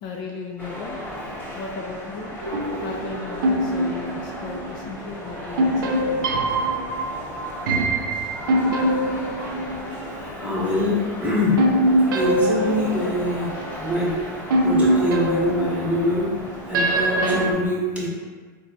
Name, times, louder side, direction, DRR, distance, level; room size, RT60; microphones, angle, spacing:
voice 1, 0.0-1.0 1.5-2.3 2.8-6.3, left 4 dB, 45° left, -1 dB, 0.4 m, -35 dB
sound 1, 0.6-17.5, left 1 dB, 15° left, 0.7 m, -35 dB
sound 2, 2.4-4.9 5.6-10.3 11.6-14.0 14.5-17.5, right 1 dB, 85° right, 0.4 m, -23 dB
voice 2, 10.1-11.6 12.1-14.2 14.6-16.3 16.6-18.1, left 1 dB, 15° right, -6 dB, 0.9 m, -24 dB
3.9 x 2.2 x 2.6 m, 1.5 s
supercardioid pair, 120°, 11 cm